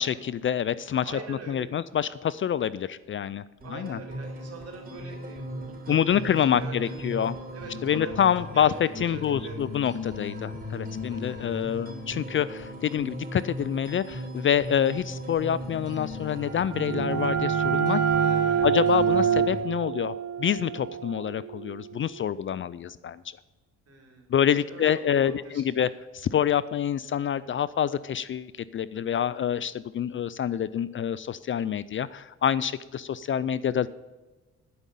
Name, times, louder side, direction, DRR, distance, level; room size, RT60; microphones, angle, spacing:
voice 1, 0.0-3.4 3.7-4.0 5.9-7.3 7.8-18.0 18.6-20.1 20.4-23.4 24.3-33.9, left 9 dB, 40° left, 17 dB, 0.4 m, -27 dB
voice 2, 1.0-1.7 3.6-7.1 7.5-8.1 8.5-9.6 11.1-11.8 18.1-18.7 23.9-24.3 24.7-24.8 25.1-25.6, right 3 dB, 55° right, 2 dB, 3.8 m, -42 dB
sound 1, 3.6-19.6, left 1 dB, 30° right, 3.8 m, -38 dB
sound 2, 16.4-21.9, right 8 dB, 70° right, 1.1 m, -26 dB
11.0 x 5.4 x 8.4 m, 1.2 s
cardioid pair, 90°, 30 cm